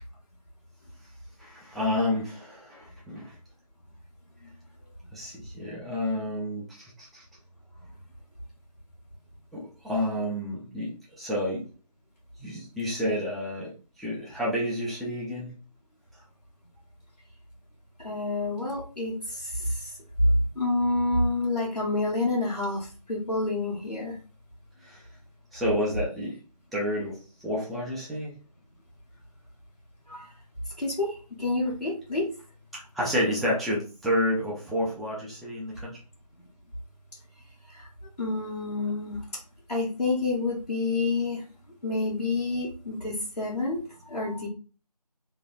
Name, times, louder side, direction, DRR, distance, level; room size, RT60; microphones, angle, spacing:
voice 1, 1.4-3.4 5.1-7.2 9.5-11.6 12.4-13.7 14.0-15.5 24.8-25.0 25.5-26.4 26.7-28.3 32.7-36.0, left 1 dB, ahead, -7 dB, 0.4 m, -30 dB
voice 2, 18.0-19.9 20.2-24.1 30.1-30.3 30.8-32.3 37.7-37.9 38.2-39.2 39.7-41.4 41.8-44.5, left 2 dB, 80° left, -6 dB, 1.2 m, -28 dB
3.1 x 2.2 x 2.4 m, 0.36 s
figure-of-eight pair, 180°, 21 cm